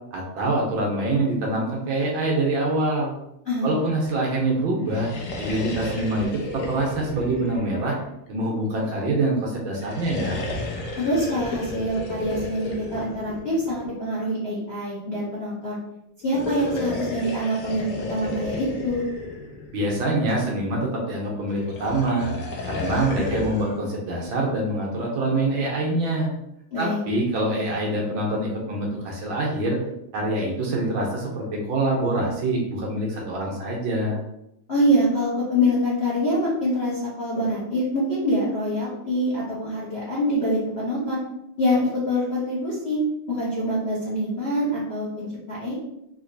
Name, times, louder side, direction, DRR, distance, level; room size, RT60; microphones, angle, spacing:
voice 1, 0.1-3.1 3.6-5.1 5.4-6.3 6.7-8.0 8.3-10.4 19.7-22.3 22.7-26.3 26.8-29.8 30.1-34.2, right 2 dB, 70° right, -2 dB, 1.5 m, -25 dB
voice 2, 3.5-3.8 11.0-15.8 16.2-19.0 26.7-27.0 34.7-41.2 41.6-43.0 43.3-45.8, equal, 45° left, -9 dB, 0.8 m, -25 dB
sound 1, 4.8-8.4 9.7-14.0 16.2-20.2 21.5-23.8, left 2 dB, 85° left, 0.7 m, -33 dB
3.9 x 2.9 x 2.6 m, 0.82 s
omnidirectional pair, 2.3 m